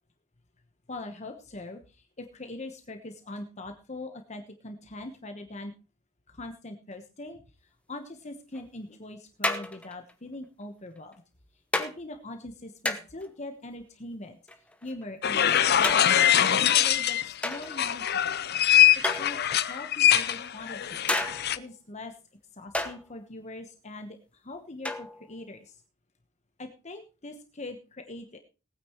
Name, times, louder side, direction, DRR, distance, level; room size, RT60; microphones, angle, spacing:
voice 1, 0.9-5.7 6.3-7.4 7.9-11.2 11.8-14.4 14.8-18.4 18.9-19.4 19.7-21.1 21.5-22.1 22.5-25.8 26.6-28.4, left 2 dB, 30° left, 6 dB, 1.1 m, -42 dB
sound 1, 8.5-8.6 9.4-10.1 11.0-11.1 11.7-11.9 12.9-13.3 14.5-15.1 15.8-16.4 17.4-18.0 19.0-19.7 21.1-21.6 22.7-23.1 24.8-25.3, left 1 dB, 5° left, 1.0 m, -32 dB
sound 2, 15.2-17.3 17.7-21.6, left 10 dB, 50° left, 0.6 m, -23 dB
19.5 x 9.3 x 3.1 m, 0.32 s
head